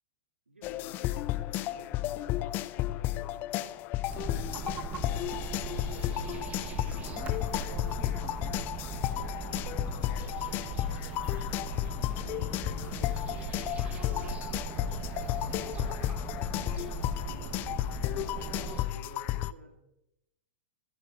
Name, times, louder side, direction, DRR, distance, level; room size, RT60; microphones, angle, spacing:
voice 1, 0.5-3.8 4.3-5.4 6.9-11.4 12.2-16.3 17.2-19.7, right 1 dB, 75° right, 4 dB, 2.2 m, -53 dB
sound 1, 0.6-19.5, left 16 dB, 30° left, 0.3 m, -33 dB
sound 2, 4.1-18.8, right 4 dB, 20° right, 1.1 m, -39 dB
sound 3, 19.6-19.8, left 2 dB, 65° left, 2.9 m, -60 dB
25.0 x 9.7 x 2.5 m, 0.87 s
figure-of-eight pair, 100°, 6 cm